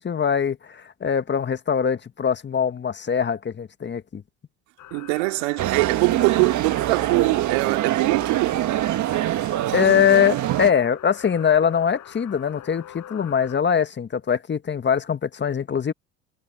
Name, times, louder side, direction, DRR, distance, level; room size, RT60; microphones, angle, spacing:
voice 1, 0.0-4.2 9.7-15.9, left 7 dB, 30° left, 1.7 m, -22 dB
sound 1, 4.8-13.6, left 12 dB, 50° left, 5.6 m, -44 dB
voice 2, 4.9-8.6 9.6-9.7, right 31 dB, 70° right, 2.6 m, -23 dB
sound 2, 5.6-10.7, right 14 dB, 50° right, 1.7 m, -24 dB
hypercardioid pair, 75°, 37 cm